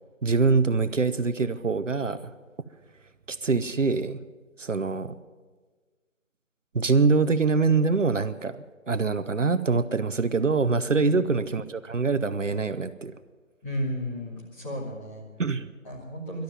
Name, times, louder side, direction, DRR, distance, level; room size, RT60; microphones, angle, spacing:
voice 1, 0.2-2.3 3.3-4.2 4.6-5.2 6.7-13.1 15.4-15.7, right 4 dB, 70° right, 13 dB, 0.8 m, -24 dB
voice 2, 13.6-15.2 15.8-16.4, equal, 10° left, -5 dB, 1.7 m, -33 dB
13.0 x 12.0 x 9.3 m, 1.4 s
figure-of-eight pair, 155°, 39 cm